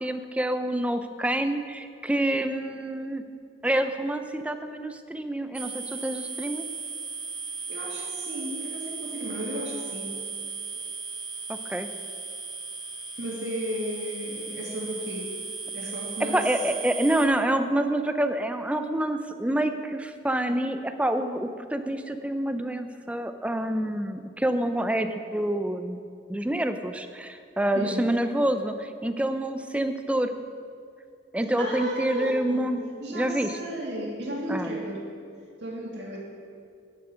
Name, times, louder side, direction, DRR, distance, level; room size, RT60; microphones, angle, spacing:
voice 1, 0.0-3.2 3.6-6.7 11.5-11.9 16.3-26.0 26.3-30.4 31.3-32.8 33.1-33.6 34.5-34.7, right 1 dB, 5° right, 8 dB, 0.4 m, -27 dB
sound 1, 5.5-17.3, right 4 dB, 25° right, 0.8 m, -36 dB
voice 2, 7.7-10.2 13.2-15.3 15.7-16.4 27.7-28.1 31.4-32.7 33.0-35.0 35.6-36.2, right 1 dB, 80° right, -2 dB, 2.0 m, -34 dB
9.1 x 7.4 x 5.6 m, 2.4 s
head